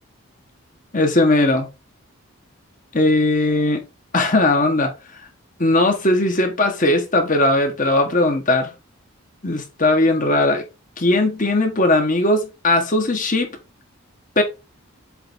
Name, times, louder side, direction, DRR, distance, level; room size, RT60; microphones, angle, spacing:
voice 1, 0.9-1.7 2.9-3.8 4.1-4.9 5.6-8.7 9.4-10.6 11.0-13.5 14.4-14.5, left 2 dB, 40° left, 1.4 m, -18 dB
7.6 x 3.4 x 4.1 m
head